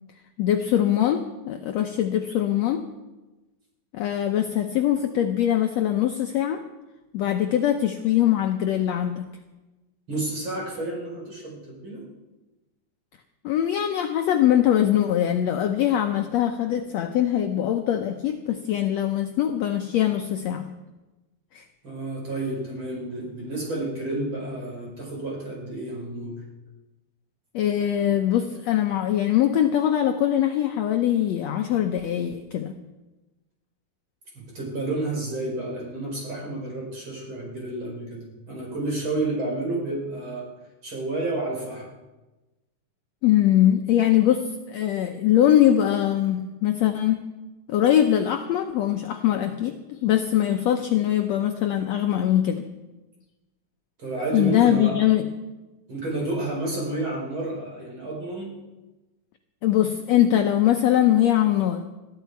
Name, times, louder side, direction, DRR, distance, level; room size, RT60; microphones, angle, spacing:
voice 1, 0.4-2.8 3.9-6.6 7.1-9.3 13.4-20.7 21.5-21.6 27.5-32.8 43.2-47.2 47.7-52.6 54.3-55.3 59.6-61.8, left 11 dB, 80° left, 5 dB, 1.5 m, -22 dB
voice 2, 10.1-12.0 21.8-26.4 34.3-40.5 40.8-41.9 54.0-55.0 55.9-58.5, right 2 dB, 35° right, -2 dB, 5.2 m, -30 dB
21.5 x 14.0 x 4.6 m, 1.1 s
omnidirectional pair, 4.1 m